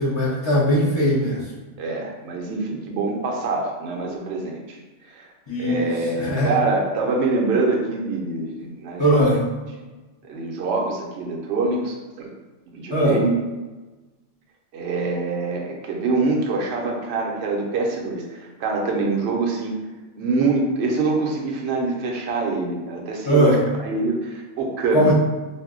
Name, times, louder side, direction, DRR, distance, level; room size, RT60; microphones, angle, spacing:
voice 1, 0.0-1.5 5.5-6.5 9.0-9.4 12.9-13.2 23.2-23.6 24.9-25.1, equal, 30° left, -8 dB, 0.5 m, -20 dB
voice 2, 1.8-4.8 5.1-5.3 5.6-9.2 10.2-12.3 12.7-13.4 14.7-19.8 20.2-23.6 23.9-25.1, right 3 dB, 65° right, 0 dB, 0.8 m, -25 dB
2.6 x 2.1 x 3.6 m, 1.2 s
omnidirectional pair, 1.3 m